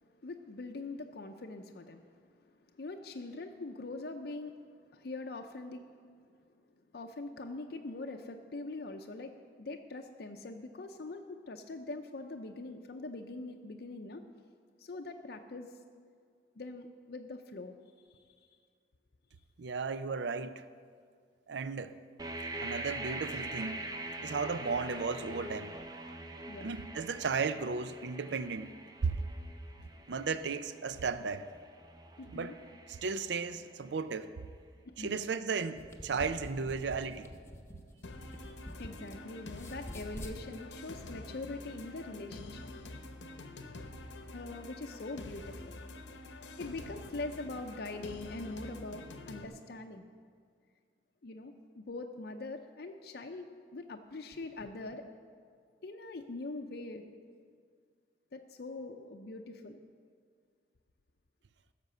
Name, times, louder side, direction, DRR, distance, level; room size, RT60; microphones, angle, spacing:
voice 1, 0.0-5.9 6.9-14.2 14.8-15.8 16.6-18.5 26.4-26.7 29.3-29.6 29.9-30.1 32.1-32.6 34.9-35.2 38.8-42.7 44.3-45.9 46.4-50.0 51.2-55.1 55.8-57.0 58.3-59.8, left 2 dB, 60° left, 0.6 m, -43 dB
voice 2, 19.6-20.6 21.5-22.0 22.6-23.8 24.2-25.7 26.6-28.7 29.0-29.2 30.1-31.5 32.3-32.5 32.9-34.3 35.0-37.3, right 5 dB, 75° right, 0.5 m, -35 dB
sound 1, 22.2-34.0, right 1 dB, 20° right, 0.7 m, -44 dB
sound 2, 35.8-39.2 39.5-40.4, left 1 dB, 15° left, 0.8 m, -46 dB
sound 3, 38.0-49.5, left 2 dB, 90° left, 0.9 m, -47 dB
15.5 x 6.7 x 6.7 m
head